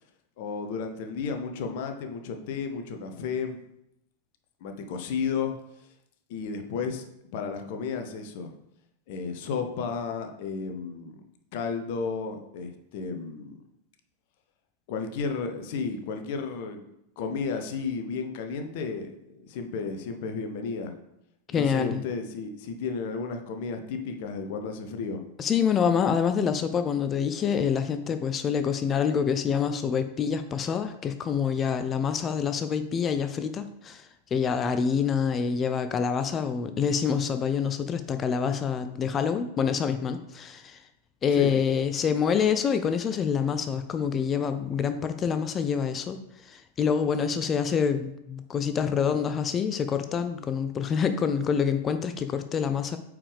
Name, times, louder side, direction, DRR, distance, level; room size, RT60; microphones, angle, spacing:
voice 1, 0.4-3.6 4.6-5.6 6.3-8.5 9.1-11.2 11.5-13.6 14.9-16.8 17.2-20.9 21.5-25.2 41.3-41.5, left 5 dB, 50° left, 6 dB, 0.9 m, -33 dB
voice 2, 21.5-22.0 25.4-40.8 41.2-46.2 46.5-53.0, left 7 dB, 25° left, 10 dB, 0.5 m, -26 dB
8.4 x 4.8 x 3.5 m, 0.80 s
figure-of-eight pair, 90°, 0 cm